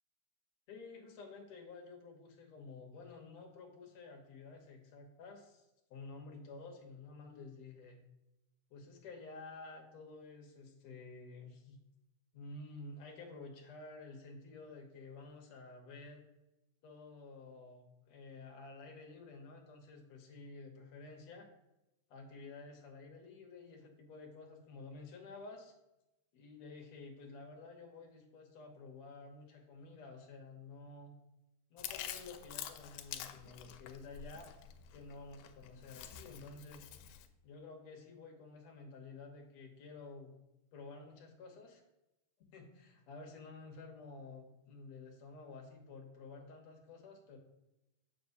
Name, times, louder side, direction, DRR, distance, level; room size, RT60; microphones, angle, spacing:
voice 1, 0.7-5.7 5.9-8.0 8.7-11.8 12.3-16.3 16.8-21.5 22.1-25.7 26.3-31.1 31.7-34.5 34.9-36.9 37.4-40.3 40.7-41.8 42.5-47.4, left 3 dB, 65° left, 1 dB, 1.9 m, -51 dB
Chewing mastication, 31.8-37.3, left 11 dB, 85° left, 2.1 m, -48 dB
7.0 x 6.8 x 2.6 m, 0.95 s
omnidirectional pair, 3.7 m